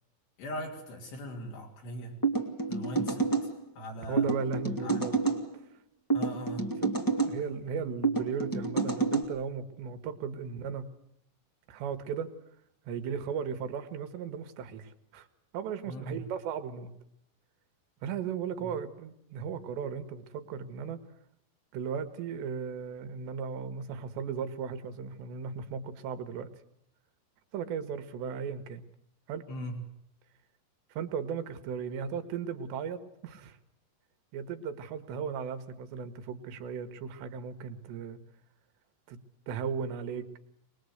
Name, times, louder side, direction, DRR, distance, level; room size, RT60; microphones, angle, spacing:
voice 1, 0.4-2.2 2.7-3.3 3.8-4.3 4.8-5.1 6.1-6.7 15.9-16.2 18.6-18.7 29.5-29.8, equal, 70° left, -1 dB, 5.3 m, -40 dB
sound 1, 2.2-3.5 4.2-5.4 6.1-7.3 8.0-9.2, right 4 dB, 15° left, 0.8 m, -28 dB
voice 2, 4.1-5.2 6.8-10.9 11.7-12.3 12.9-15.3 15.5-16.9 18.0-21.0 21.7-26.5 27.5-28.8 29.3-29.5 30.9-33.6 34.3-38.2 39.1-39.2 39.5-40.3, right 6 dB, 80° right, 9 dB, 3.7 m, -36 dB
24.5 x 21.0 x 8.0 m, 0.72 s
omnidirectional pair, 5.0 m